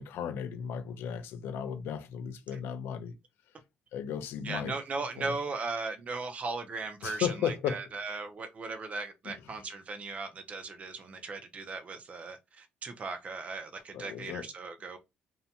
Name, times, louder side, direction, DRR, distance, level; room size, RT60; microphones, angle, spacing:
voice 1, 0.0-3.1 3.9-4.7 5.2-5.3 7.0-7.8 9.2-9.6 13.9-14.4, left 8 dB, 80° left, 0.5 m, -35 dB
voice 2, 4.4-15.0, right 4 dB, 35° right, 0.5 m, -37 dB
2.6 x 2.1 x 2.7 m
cardioid pair, 105°, 4 cm